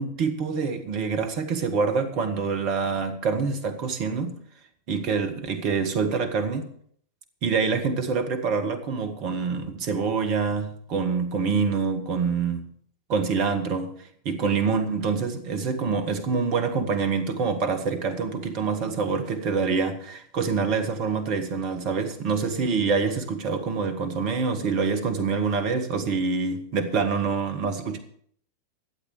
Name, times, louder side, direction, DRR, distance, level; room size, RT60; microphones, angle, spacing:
voice 1, 0.0-4.4 4.9-6.7 7.4-12.7 13.1-13.9 14.2-28.0, right 5 dB, 40° right, 1.7 m, -26 dB
12.5 x 8.2 x 6.8 m
figure-of-eight pair, 90°, 0 cm